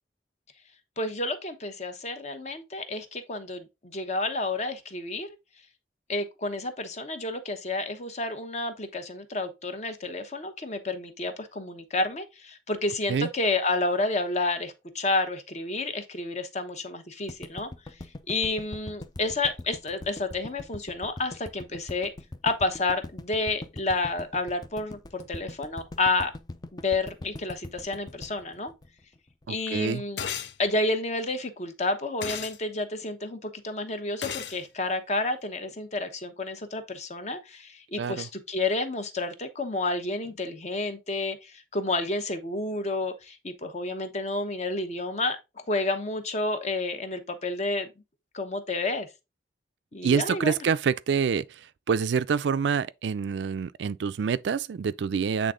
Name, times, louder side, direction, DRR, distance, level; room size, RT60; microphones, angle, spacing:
voice 1, 1.0-5.4 6.1-17.7 18.3-22.1 22.4-26.3 26.7-28.7 29.5-30.2 30.6-45.4 45.7-47.9 48.3-49.1 49.9-50.6, left 2 dB, 40° left, 1.0 m, -30 dB
sound 1, 17.3-29.5, left 2 dB, 25° left, 0.4 m, -41 dB
voice 2, 29.5-30.0 38.0-38.3 50.0-51.6 51.9-55.5, right 6 dB, 80° right, 0.4 m, -26 dB
sound 2, 30.2-30.5 32.2-32.6 34.2-34.6, left 8 dB, 80° left, 0.6 m, -33 dB
8.2 x 3.6 x 3.8 m
head